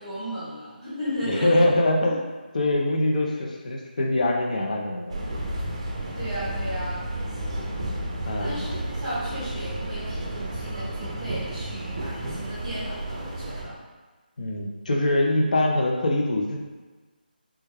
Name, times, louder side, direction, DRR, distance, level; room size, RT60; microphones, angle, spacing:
voice 1, 0.0-1.6 6.1-7.0 8.4-13.8, equal, 5° right, -14 dB, 1.1 m, -34 dB
voice 2, 1.2-2.2 2.5-5.2 8.3-8.6 14.4-16.6, left 1 dB, 50° left, 1 dB, 0.5 m, -23 dB
sound 1, 5.1-13.6, right 1 dB, 35° right, 0.5 m, -32 dB
3.3 x 2.2 x 3.3 m, 1.3 s
figure-of-eight pair, 170°, 5 cm